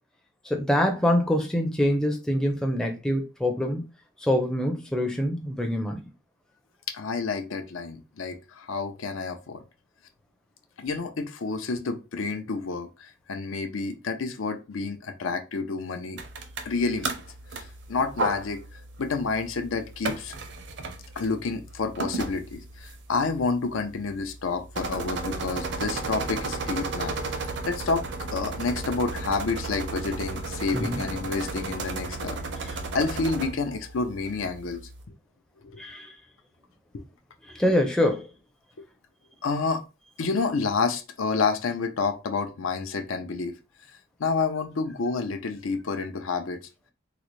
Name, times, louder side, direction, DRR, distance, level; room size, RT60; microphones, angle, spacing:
voice 1, 0.4-3.8 4.2-6.0 30.7-31.0 35.8-36.1 37.5-38.3, left 1 dB, 5° left, 0.4 m, -25 dB
voice 2, 6.9-9.6 10.8-16.2 16.6-17.2 17.5-18.6 19.0-20.3 21.2-27.2 27.6-28.1 28.3-34.8 35.6-35.8 36.9-37.0 38.8-38.9 39.4-39.8 40.2-43.5 44.2-46.6, left 4 dB, 85° left, 0.5 m, -29 dB
sound 1, 16.2-35.0, right 3 dB, 60° right, 0.5 m, -34 dB
3.8 x 2.1 x 3.0 m
head